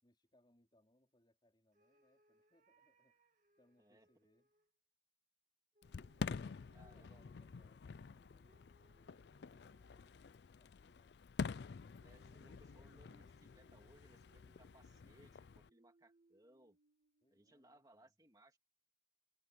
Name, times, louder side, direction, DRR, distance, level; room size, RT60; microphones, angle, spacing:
voice 1, 0.0-4.5 6.0-11.2 11.7-12.3 17.2-18.1, left 1 dB, 25° left, 4.6 m, -76 dB
sound 1, 1.7-4.7 5.7-10.5 11.9-18.0, right 1 dB, 45° right, 2.2 m, -74 dB
Fireworks, 5.8-15.7, left 5 dB, 65° left, 0.4 m, -48 dB
voice 2, 6.7-7.2 12.0-16.8 17.3-18.6, right 1 dB, 20° right, 2.5 m, -67 dB
open air
head